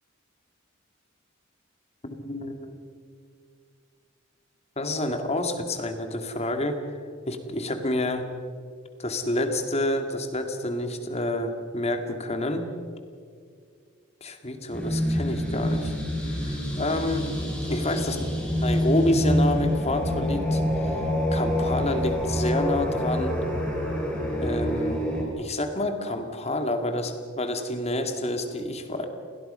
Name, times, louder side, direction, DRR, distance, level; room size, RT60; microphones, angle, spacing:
voice 1, 2.0-2.7 4.8-7.0 7.3-8.3 9.0-12.7 14.2-15.9 16.3-17.3 17.6-18.2 18.6-21.0 21.3-23.4 24.4-25.0 25.4-29.1, left 1 dB, 30° left, 6 dB, 2.2 m, -28 dB
sound 1, 14.7-25.2, equal, 5° left, 5.1 m, -26 dB
29.5 x 20.0 x 5.6 m, 2.2 s
head